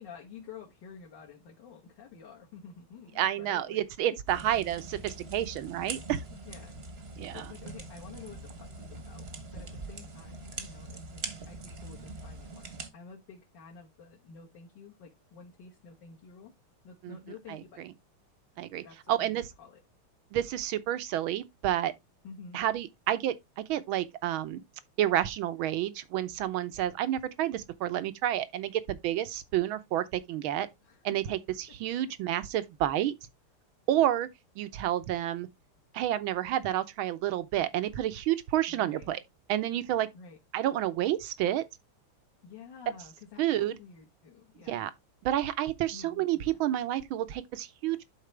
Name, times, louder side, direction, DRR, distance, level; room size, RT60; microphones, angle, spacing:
voice 1, 0.0-3.8 4.3-4.4 6.3-6.7 7.3-9.3 9.5-16.5 16.8-17.9 18.8-19.8 22.2-22.6 30.8-31.0 38.7-39.1 40.1-40.4 42.4-44.8 45.9-46.4, left 6 dB, 55° left, 2.1 m, -50 dB
voice 2, 3.2-6.2 7.2-7.5 17.0-17.2 17.5-17.9 18.6-19.4 20.3-21.9 22.5-24.6 25.0-30.7 31.0-33.1 33.9-34.3 34.6-35.5 35.9-39.2 39.5-40.1 40.5-41.6 43.4-43.8 44.7-44.9 45.2-48.1, right 12 dB, 75° right, 1.5 m, -30 dB
sound 1, 4.3-12.9, right 3 dB, 35° right, 1.1 m, -43 dB
11.5 x 4.2 x 3.2 m
omnidirectional pair, 2.4 m